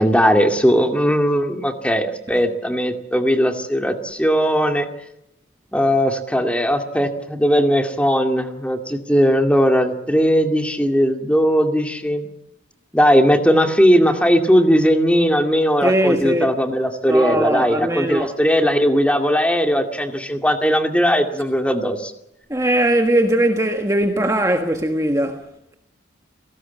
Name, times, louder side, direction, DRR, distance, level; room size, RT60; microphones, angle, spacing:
voice 1, 0.0-4.9 5.7-12.3 12.9-22.1, equal, 5° left, 2.2 m, -18 dB
voice 2, 15.8-16.5 17.1-18.3 22.5-25.5, right 1 dB, 15° right, 1.3 m, -20 dB
30.0 x 18.0 x 8.5 m
head